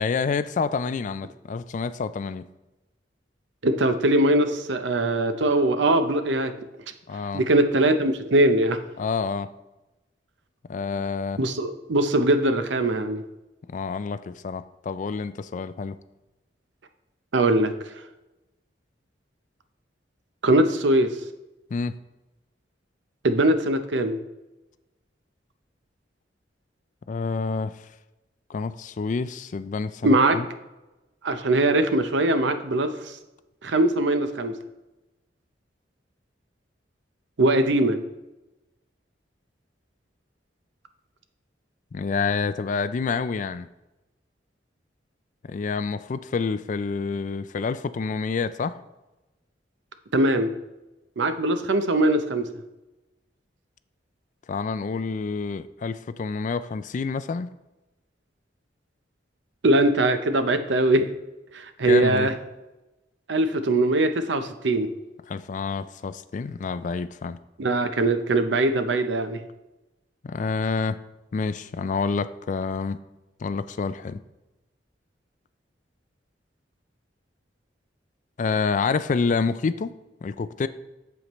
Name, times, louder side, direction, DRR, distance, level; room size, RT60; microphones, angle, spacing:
voice 1, 0.0-2.5 7.1-7.4 9.0-9.5 10.7-11.4 13.7-16.0 21.7-22.0 27.1-27.8 28.5-30.5 41.9-43.7 45.5-48.7 54.5-57.5 61.8-62.3 65.3-67.4 70.2-71.0 71.3-73.0 73.4-74.2 78.4-79.9 80.2-80.7, left 4 dB, 45° left, 14 dB, 0.3 m, -28 dB
voice 2, 3.6-6.5 7.3-8.8 11.4-13.2 17.3-17.7 20.4-21.1 23.2-24.2 30.0-30.4 31.2-32.9 33.6-34.5 37.4-38.0 50.1-50.5 51.2-52.5 59.6-61.0 61.5-62.3 63.3-64.9 67.6-69.4, right 1 dB, 75° right, 9 dB, 0.7 m, -21 dB
8.2 x 7.1 x 3.0 m, 1.0 s
head